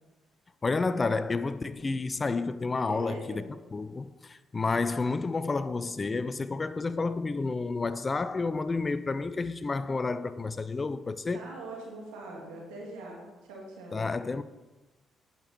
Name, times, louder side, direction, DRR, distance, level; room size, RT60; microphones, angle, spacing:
voice 1, 0.6-3.4 3.7-11.4 13.9-14.4, left 3 dB, 35° left, 0.6 m, -30 dB
voice 2, 2.9-3.5 11.3-14.0, right 2 dB, 85° right, 2.3 m, -42 dB
8.9 x 6.9 x 4.3 m
hypercardioid pair, 50°, 0 cm